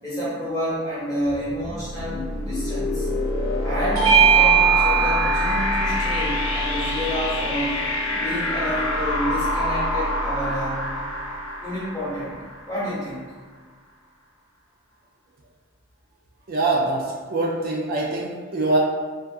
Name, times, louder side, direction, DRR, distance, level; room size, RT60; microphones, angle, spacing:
voice 1, 0.0-3.1 3.6-7.8 8.1-10.9 11.6-12.3 12.7-13.2, equal, 20° left, -10 dB, 1.0 m, -29 dB
sound 1, 1.3-13.0, left 1 dB, 85° left, 0.6 m, -26 dB
Bell / Doorbell, 3.9-8.8, right 6 dB, 90° right, 0.7 m, -22 dB
voice 2, 16.5-18.8, right 2 dB, 45° right, -3 dB, 0.3 m, -24 dB
2.5 x 2.3 x 2.3 m, 1.5 s
head